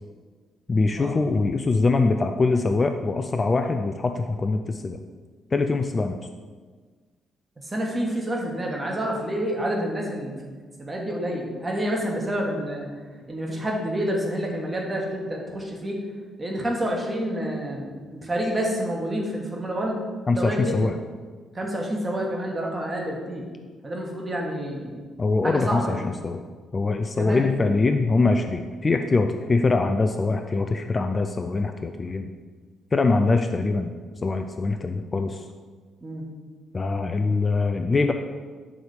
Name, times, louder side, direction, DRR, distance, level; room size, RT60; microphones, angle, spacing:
voice 1, 0.7-5.0 5.5-6.2 20.3-20.9 25.2-26.4 26.7-32.3 32.9-33.9 34.2-35.4 36.7-38.1, left 3 dB, 30° left, 6 dB, 0.4 m, -23 dB
voice 2, 7.6-12.9 13.3-16.0 16.4-20.0 20.3-20.8 21.5-23.4 23.8-25.0 25.4-26.0 27.2-27.5 36.0-36.2, equal, 25° right, -1 dB, 1.4 m, -28 dB
6.1 x 3.9 x 5.0 m, 1.5 s
figure-of-eight pair, 40°, 0 cm